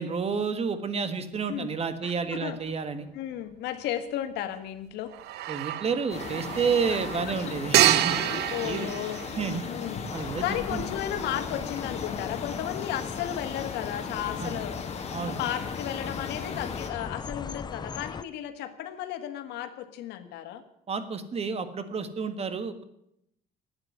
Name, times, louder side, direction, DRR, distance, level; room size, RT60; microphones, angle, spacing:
voice 1, 0.0-3.1 5.5-8.1 8.6-8.9 9.4-9.7 10.1-10.4 10.7-10.9 14.4-14.5 15.1-15.4 20.9-22.8, right 5 dB, 35° right, 11 dB, 1.7 m, -30 dB
voice 2, 2.0-2.6 3.1-5.1 6.9-7.0 7.3-7.5 8.1-9.2 9.7-10.1 10.4-14.8 15.3-20.6, left 11 dB, 85° left, 9 dB, 1.6 m, -34 dB
sound 1, 2.4-2.5 5.1-9.9, right 14 dB, 75° right, 0.7 m, -28 dB
sound 2, 6.1-16.9, left 5 dB, 40° left, 2.1 m, -37 dB
sound 3, 10.1-18.2, left 6 dB, 25° left, 0.5 m, -39 dB
12.0 x 8.8 x 9.5 m, 0.76 s
cardioid pair, 110°, 17 cm